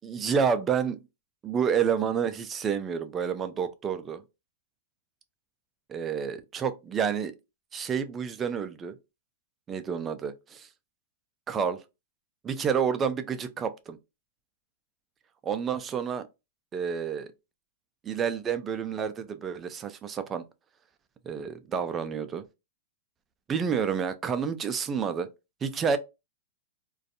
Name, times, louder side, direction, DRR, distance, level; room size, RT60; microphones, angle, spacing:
voice 1, 0.0-1.0 1.4-4.2 5.9-7.3 7.7-9.0 9.7-10.7 11.5-11.8 12.4-14.0 15.4-16.3 16.7-17.3 18.0-20.4 21.2-22.5 23.5-25.3 25.6-26.0, right 7 dB, 20° right, 0.3 m, -29 dB
2.5 x 2.2 x 2.5 m
hypercardioid pair, 135°, 0 cm